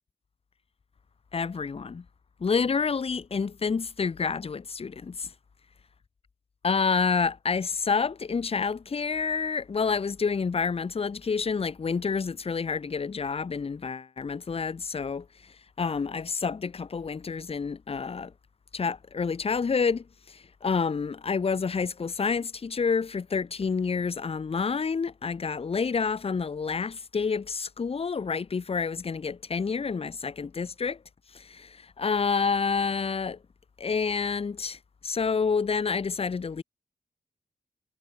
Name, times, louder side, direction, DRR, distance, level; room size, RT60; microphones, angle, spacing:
voice 1, 1.3-2.0 2.4-5.3 6.6-18.3 18.7-31.0 31.3-33.4 33.8-36.6, left 5 dB, 35° left, 0.6 m, -28 dB
cardioid pair, 45°, 16 cm